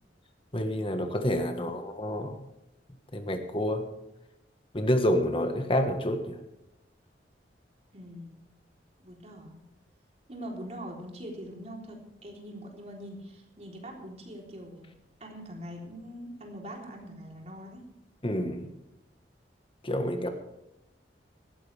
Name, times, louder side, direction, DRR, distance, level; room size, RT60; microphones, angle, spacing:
voice 1, 0.5-2.4 3.1-3.9 4.7-6.4 18.2-18.7 19.8-20.3, equal, 30° left, 7 dB, 1.4 m, -28 dB
voice 2, 7.9-8.4 9.0-9.6 10.3-14.9 15.2-17.9 20.2-20.3, equal, 35° right, 0 dB, 3.7 m, -43 dB
18.0 x 15.0 x 3.4 m, 0.90 s
head